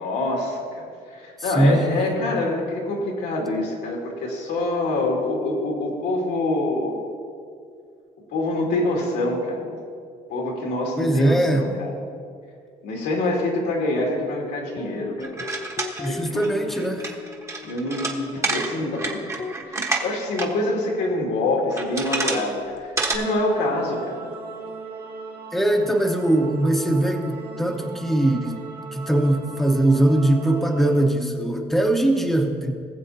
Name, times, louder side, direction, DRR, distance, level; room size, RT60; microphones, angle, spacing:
voice 1, 0.0-7.0 8.3-9.8 10.3-11.9 12.8-15.4 16.0-16.4 17.6-19.2 19.7-24.3, left 2 dB, 80° left, -2 dB, 2.4 m, -26 dB
voice 2, 1.4-2.1 11.0-11.7 16.0-17.2 25.5-28.6 28.9-32.7, right 1 dB, ahead, 2 dB, 1.0 m, -21 dB
sound 1, 14.2-19.6, left 5 dB, 35° left, 0.6 m, -39 dB
sound 2, 15.2-20.5 20.8-20.9 21.6-22.5 22.8-23.2, right 3 dB, 15° right, 1.2 m, -28 dB
sound 3, 23.0-31.0, right 4 dB, 65° right, 1.9 m, -37 dB
19.5 x 7.3 x 2.8 m, 2.2 s
cardioid pair, 110°, 17 cm